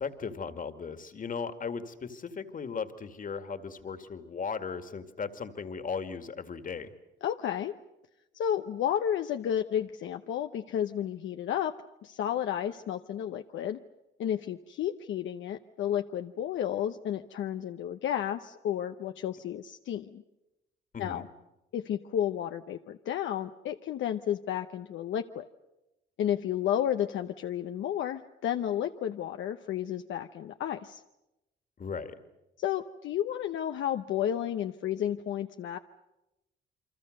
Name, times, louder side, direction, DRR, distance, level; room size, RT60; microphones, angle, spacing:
voice 1, 0.0-6.9 20.9-21.2 31.8-32.2, left 5 dB, 45° left, 9 dB, 2.2 m, -37 dB
voice 2, 7.2-7.7 8.3-11.7 12.0-13.8 14.2-20.2 21.0-21.2 21.7-25.4 26.2-31.0 32.6-35.8, left 10 dB, 75° left, 6 dB, 0.9 m, -32 dB
29.0 x 24.0 x 6.6 m, 0.95 s
cardioid pair, 90°, 20 cm